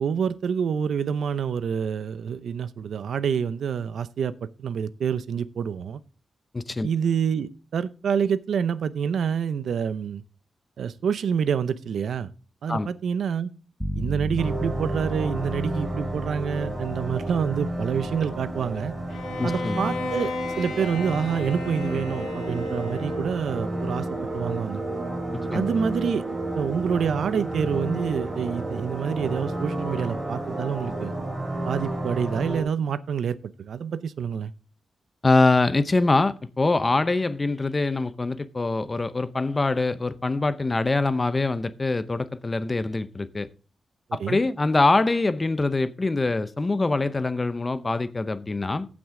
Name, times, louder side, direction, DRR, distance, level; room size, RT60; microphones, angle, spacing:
voice 1, 0.0-6.0 6.8-10.2 10.8-12.3 12.6-13.5 14.0-18.9 19.4-24.1 24.3-24.8 25.5-26.2 26.6-31.1 31.6-34.5 44.2-44.4, right 7 dB, 80° right, 0.6 m, -27 dB
voice 2, 6.5-6.9 12.7-12.9 19.4-19.8 25.5-25.7 35.2-43.5 44.1-48.9, left 3 dB, 25° left, 0.7 m, -24 dB
sound 1, 13.8-24.3, equal, 5° left, 1.0 m, -36 dB
sound 2, 14.4-32.6, right 1 dB, 15° right, 3.9 m, -31 dB
Bowed string instrument, 19.1-23.5, left 3 dB, 85° left, 2.4 m, -34 dB
15.5 x 6.1 x 3.8 m
wide cardioid pair, 120°, 0 cm